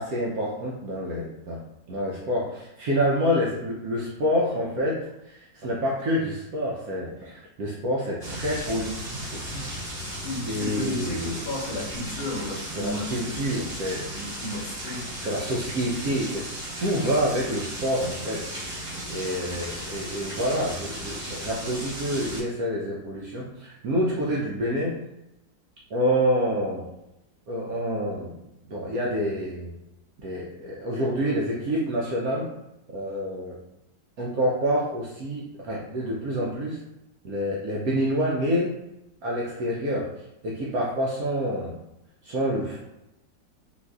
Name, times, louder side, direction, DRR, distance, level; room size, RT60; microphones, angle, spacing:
voice 1, 0.0-1.6 1.9-9.6 10.4-11.4 12.7-14.1 14.5-14.6 15.2-16.5 16.8-18.8 19.1-25.0 25.9-26.8 27.5-28.3 28.6-29.7 30.2-32.5 32.9-33.6 34.2-36.8 37.2-38.7 39.2-40.1 40.4-41.8 42.2-42.8, equal, 70° right, -4 dB, 0.8 m, -27 dB
sound 1, 8.2-22.4, right 1 dB, 50° right, 2.0 m, -36 dB
voice 2, 10.2-13.3 14.1-15.0, left 2 dB, 80° left, -1 dB, 1.5 m, -33 dB
3.9 x 2.5 x 2.3 m, 0.90 s
omnidirectional pair, 2.0 m